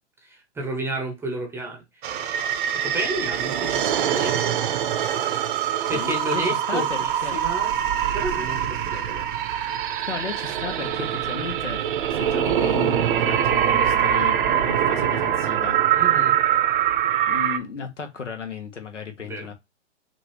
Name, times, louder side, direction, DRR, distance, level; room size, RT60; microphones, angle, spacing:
voice 1, 0.2-2.4 2.7-4.4 5.9-7.7 8.1-9.2 16.0-16.4 19.2-19.5, right 1 dB, 5° right, 0.7 m, -31 dB
sound 1, 2.0-17.6, right 10 dB, 45° right, 0.7 m, -23 dB
voice 2, 5.8-6.8 7.2-7.4 9.7-9.8 10.1-11.8 12.1-15.8 17.3-19.5, left 6 dB, 90° left, 1.3 m, -34 dB
6.0 x 2.6 x 3.1 m
hypercardioid pair, 125°, 35 cm